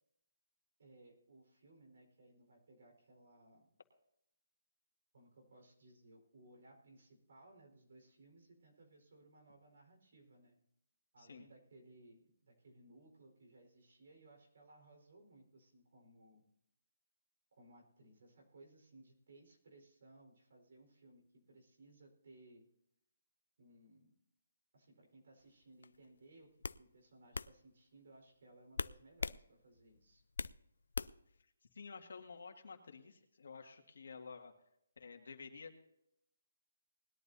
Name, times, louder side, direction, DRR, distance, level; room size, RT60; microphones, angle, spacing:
voice 1, 0.8-3.7 5.1-10.6 11.1-16.4 17.5-22.7 23.6-24.2 24.7-26.5 26.8-30.2, right 2 dB, 55° right, 1 dB, 4.7 m, -62 dB
sound 1, 25.8-26.1 26.6-26.8 27.3-27.5 28.8-29.4 29.8-30.6 30.9-31.3, left 4 dB, 80° left, 0.4 m, -40 dB
voice 2, 31.7-34.5 35.0-35.8, left 5 dB, 65° left, 4 dB, 2.0 m, -51 dB
20.0 x 12.0 x 2.8 m, 0.78 s
hypercardioid pair, 175°, 0 cm